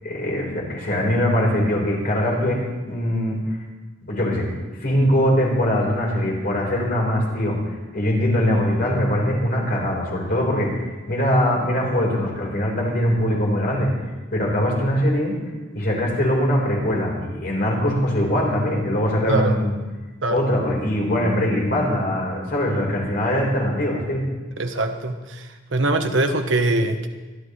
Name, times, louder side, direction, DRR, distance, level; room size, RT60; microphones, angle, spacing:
voice 1, 0.0-3.4 4.0-4.4 4.8-7.6 7.9-13.9 14.3-15.4 15.7-19.7 20.3-24.2, equal, 55° left, -2 dB, 4.4 m, -22 dB
voice 2, 19.3-19.6 20.2-20.4 24.6-27.1, right 2 dB, 80° right, 6 dB, 1.2 m, -22 dB
24.0 x 12.0 x 3.3 m, 1.2 s
head